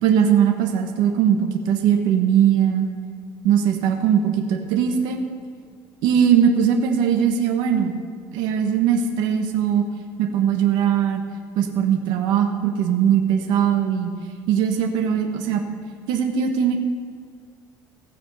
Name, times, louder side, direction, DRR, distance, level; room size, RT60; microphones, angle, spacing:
voice 1, 0.0-2.9 3.4-5.2 6.0-8.0 8.3-9.8 10.2-11.2 11.5-14.1 14.5-15.6 16.1-16.8, right 8 dB, 65° right, 4 dB, 1.2 m, -20 dB
16.0 x 7.2 x 5.5 m, 2.2 s
cardioid pair, 175°, 8 cm